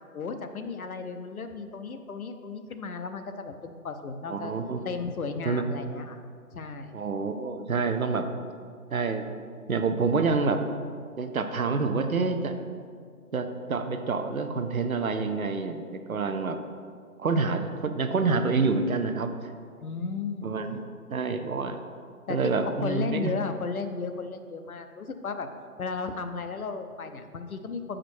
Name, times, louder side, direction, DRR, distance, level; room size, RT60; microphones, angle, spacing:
voice 1, 0.1-4.5 4.8-6.2 6.5-6.9 10.0-10.2 19.8-20.5 22.3-25.5 25.8-28.0, left 4 dB, 65° left, 7 dB, 0.7 m, -34 dB
voice 2, 4.3-4.8 5.5-5.7 6.9-8.3 8.9-9.3 9.7-10.6 11.2-12.6 13.3-16.6 17.2-19.3 20.4-20.8 21.1-21.8 22.3-23.3, right 4 dB, 65° right, 7 dB, 0.7 m, -27 dB
7.6 x 5.0 x 4.4 m, 2.1 s
figure-of-eight pair, 150°, 46 cm